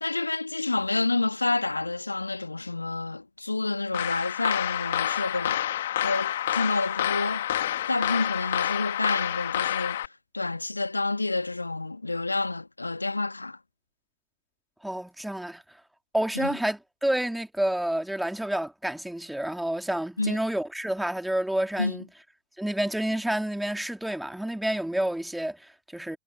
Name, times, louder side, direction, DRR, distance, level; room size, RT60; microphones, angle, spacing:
voice 1, 0.0-5.6 6.0-7.5 7.9-13.6 16.4-16.6 20.2-20.4 21.8-22.0, left 3 dB, 80° left, 1.7 m, -29 dB
sound 1, 3.9-10.1, left 12 dB, 60° left, 2.4 m, -28 dB
voice 2, 14.8-15.6 16.1-22.0 22.6-26.2, right 1 dB, 5° right, 3.2 m, -29 dB
figure-of-eight pair, 90°, 0 cm